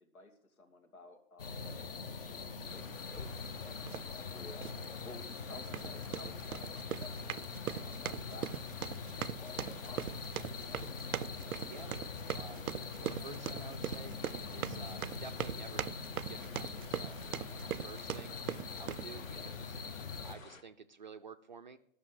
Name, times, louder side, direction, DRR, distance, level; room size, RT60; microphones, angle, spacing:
voice 1, 0.0-4.6 5.0-7.3 7.7-8.6 8.9-10.1 19.3-19.5, left 2 dB, 80° left, 6 dB, 2.5 m, -55 dB
sound 1, 1.4-20.4, left 4 dB, 40° left, 1.1 m, -43 dB
sound 2, 2.6-20.6, left 5 dB, 65° left, 1.5 m, -54 dB
sound 3, 3.9-4.1 4.6-4.8 5.6-19.1, right 10 dB, 85° right, 0.6 m, -41 dB
voice 2, 13.0-14.2 14.5-15.9 16.3-17.2 17.5-18.4 18.8-19.7 20.2-21.8, right 5 dB, 35° right, 8 dB, 0.5 m, -51 dB
13.0 x 6.2 x 7.6 m, 0.75 s
hypercardioid pair, 160°, 42 cm